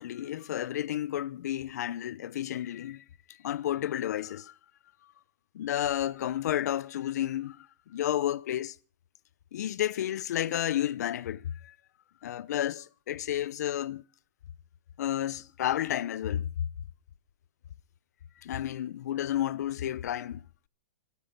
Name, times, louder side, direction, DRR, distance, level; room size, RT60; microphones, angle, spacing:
voice 1, 0.0-4.5 5.0-5.1 5.5-8.8 9.5-11.7 12.2-14.0 15.0-16.7 18.4-20.4, left 11 dB, 55° left, 0.8 m, -31 dB
24.5 x 8.5 x 5.8 m
hypercardioid pair, 165°, 10 cm